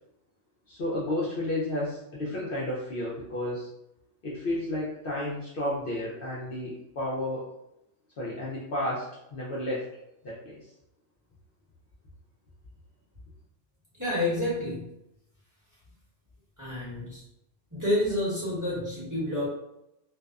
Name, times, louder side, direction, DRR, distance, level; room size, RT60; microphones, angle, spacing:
voice 1, 0.7-3.7 4.2-7.5 8.2-9.9 10.2-10.6, left 1 dB, 60° left, -6 dB, 0.7 m, -32 dB
voice 2, 14.0-14.9 16.6-17.2 17.7-19.5, left 1 dB, 15° right, -9 dB, 1.0 m, -29 dB
2.6 x 2.1 x 2.4 m, 0.85 s
omnidirectional pair, 1.2 m